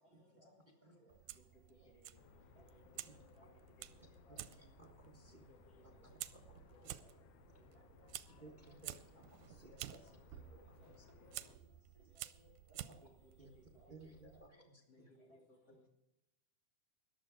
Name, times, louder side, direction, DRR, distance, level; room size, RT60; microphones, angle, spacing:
voice 1, 0.0-0.4 1.3-3.0 3.4-4.2 5.2-6.4 6.7-6.9 7.5-7.9 8.5-8.8 9.1-9.6 10.3-10.9 11.2-11.3 12.0-12.2 13.0-14.1 14.9-15.9, equal, 50° left, 1 dB, 3.4 m, -68 dB
voice 2, 0.8-1.2 2.8-3.6 4.1-4.6 6.3-6.4 6.7-7.2 7.7-8.1 8.4-8.8 9.9-10.1 10.5-11.7 12.0-13.1 13.7-13.9 14.2-14.4 15.1-15.4, left 1 dB, 25° left, -2 dB, 4.0 m, -67 dB
Fire, 1.1-14.5, right 14 dB, 85° right, 2.1 m, -53 dB
sound 1, 2.1-11.6, left 10 dB, 80° left, 1.9 m, -65 dB
voice 3, 4.3-5.5 6.0-6.2 6.5-7.0 7.5-7.6 8.3-10.1 10.4-10.5 11.0-11.1 13.4-13.5 13.9-15.1, right 2 dB, 40° right, 1 dB, 0.6 m, -60 dB
sound 2, 6.1-7.5 9.8-12.2 12.9-13.0, right 8 dB, 65° right, 1.7 m, -62 dB
14.5 x 10.5 x 5.0 m, 0.91 s
omnidirectional pair, 3.5 m